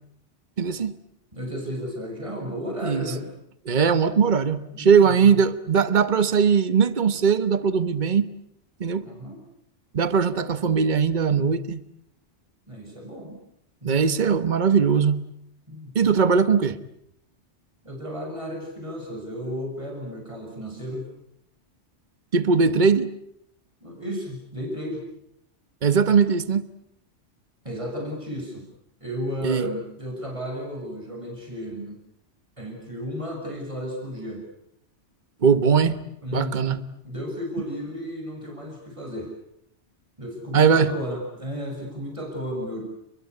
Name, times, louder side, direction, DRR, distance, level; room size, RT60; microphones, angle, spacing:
voice 1, 0.6-0.9 2.8-3.1 3.7-8.3 8.8-9.1 9.9-11.8 13.8-15.2 15.9-16.8 22.3-23.1 25.8-26.6 29.4-29.7 35.4-36.0 36.3-36.8 40.5-40.9, right 6 dB, 40° right, 1.3 m, -20 dB
voice 2, 1.3-3.3 4.7-5.4 9.0-9.4 12.7-13.4 13.8-14.4 15.7-16.1 17.8-21.1 23.8-25.0 27.6-28.7 29.0-32.0 32.6-34.4 36.2-39.3 40.2-42.8, equal, 25° right, 7.6 m, -33 dB
30.0 x 22.0 x 8.4 m
omnidirectional pair, 1.2 m